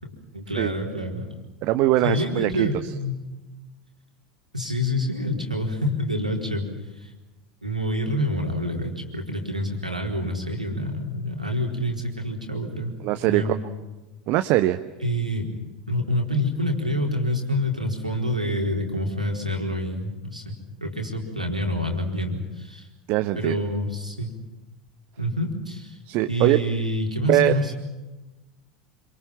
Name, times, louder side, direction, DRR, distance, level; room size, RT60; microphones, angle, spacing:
voice 1, 0.0-1.3 2.0-3.2 4.5-6.7 7.0-7.1 7.6-13.0 13.3-13.6 15.0-15.5 15.9-22.9 23.3-24.3 25.2-26.0 26.3-27.7, left 1 dB, 90° right, 1 dB, 4.3 m, -27 dB
voice 2, 1.6-2.7 13.0-13.5 14.3-14.8 23.1-23.6 26.1-26.6 27.3-27.5, right 15 dB, 45° right, 9 dB, 1.1 m, -21 dB
27.5 x 26.5 x 5.9 m, 1.1 s
figure-of-eight pair, 75°, 4 cm